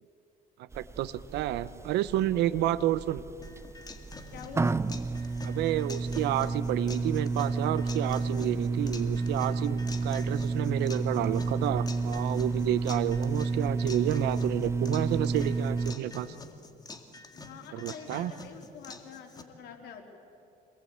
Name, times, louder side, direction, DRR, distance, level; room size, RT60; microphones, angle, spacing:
voice 1, 0.6-3.2 5.4-16.3 17.7-18.3, right 13 dB, 85° right, 15 dB, 0.8 m, -30 dB
sound 1, 0.7-15.9, right 3 dB, 15° right, 0.5 m, -31 dB
sound 2, 3.4-19.4, left 3 dB, 25° left, 2.1 m, -46 dB
voice 2, 4.3-4.8 17.3-20.0, left 7 dB, 75° left, 2 dB, 3.9 m, -46 dB
26.5 x 20.5 x 8.7 m, 2.6 s
cardioid pair, 110°, 17 cm